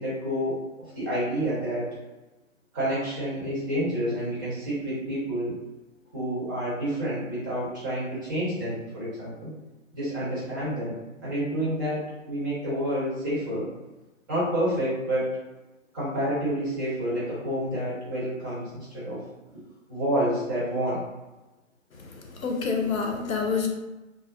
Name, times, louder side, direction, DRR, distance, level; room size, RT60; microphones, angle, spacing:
voice 1, 0.0-1.9 2.7-5.6 6.1-9.5 9.9-10.9 11.2-13.7 14.3-15.3 15.9-19.2 19.9-21.0 22.6-22.7, equal, 15° right, -9 dB, 0.6 m, -29 dB
voice 2, 21.9-23.7, left 5 dB, 85° left, 2 dB, 0.7 m, -28 dB
2.3 x 2.3 x 2.3 m, 1.1 s
figure-of-eight pair, 135°, 40 cm